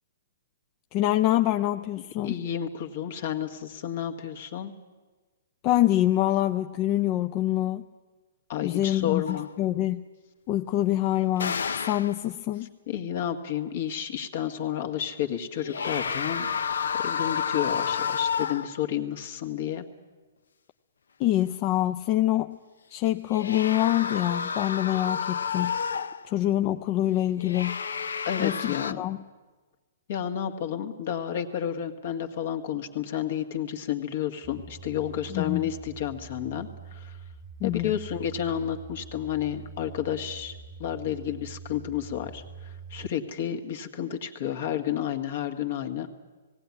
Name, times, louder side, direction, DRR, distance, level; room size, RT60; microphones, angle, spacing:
voice 1, 0.9-2.3 5.6-7.8 8.6-10.0 10.5-12.7 21.2-22.6 22.9-25.8 26.2-27.8 28.4-29.2 35.3-35.7 37.6-38.0, left 14 dB, 35° left, 8 dB, 0.6 m, -25 dB
voice 2, 2.2-4.7 8.5-9.5 12.9-16.5 17.0-19.9 28.3-29.0 30.1-37.2 37.6-46.1, left 10 dB, 55° left, 6 dB, 1.9 m, -31 dB
sound 1, 9.3-9.5 11.4-12.2 15.5-18.8 23.2-26.3 27.4-28.9, left 6 dB, 80° left, 0.6 m, -30 dB
sound 2, 34.4-43.1, right 6 dB, 25° right, 0.6 m, -44 dB
18.0 x 17.0 x 9.7 m, 1.3 s
hypercardioid pair, 135°, 0 cm